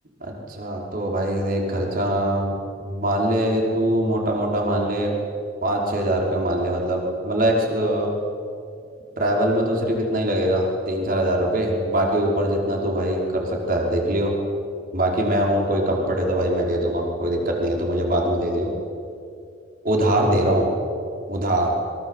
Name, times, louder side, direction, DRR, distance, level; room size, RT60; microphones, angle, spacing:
voice 1, 0.2-2.6 2.9-5.1 5.6-8.1 9.2-14.4 14.9-18.7 19.8-20.7 21.3-21.7, right 1 dB, 50° right, 0 dB, 5.2 m, -22 dB
29.0 x 24.0 x 8.3 m, 2.4 s
head